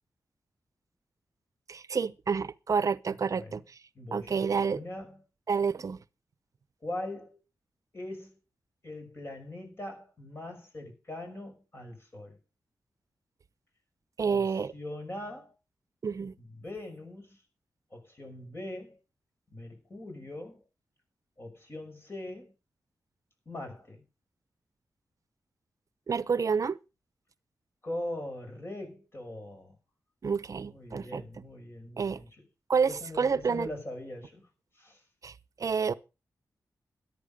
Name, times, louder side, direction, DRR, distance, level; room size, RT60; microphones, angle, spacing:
voice 1, 1.7-3.6 4.1-4.8 5.5-6.0 14.2-14.7 16.0-16.3 26.1-26.8 30.2-31.2 32.0-32.2 32.7-33.7 35.2-35.3 35.6-35.9, right 5 dB, 55° right, 0.8 m, -29 dB
voice 2, 3.9-5.2 6.8-7.4 7.9-8.4 8.8-12.4 14.2-15.5 16.4-17.4 17.9-19.0 19.5-20.6 21.4-22.5 23.5-24.0 27.8-29.8 30.7-32.3 32.9-34.5 34.8-35.0, left 1 dB, 35° left, 6.1 m, -41 dB
13.5 x 10.5 x 5.2 m
cardioid pair, 85°, 7 cm